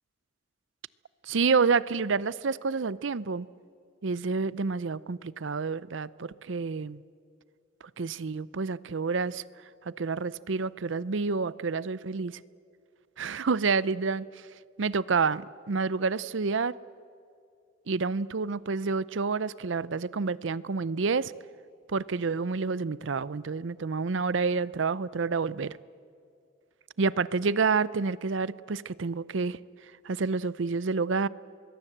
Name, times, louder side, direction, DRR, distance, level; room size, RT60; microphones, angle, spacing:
voice 1, 1.3-3.5 4.0-7.0 8.0-9.4 9.9-12.4 13.2-14.3 14.8-16.7 17.9-21.3 21.9-25.8 27.0-29.6 30.0-31.3, right 4 dB, 70° right, 0.6 m, -28 dB
24.0 x 22.0 x 7.9 m
head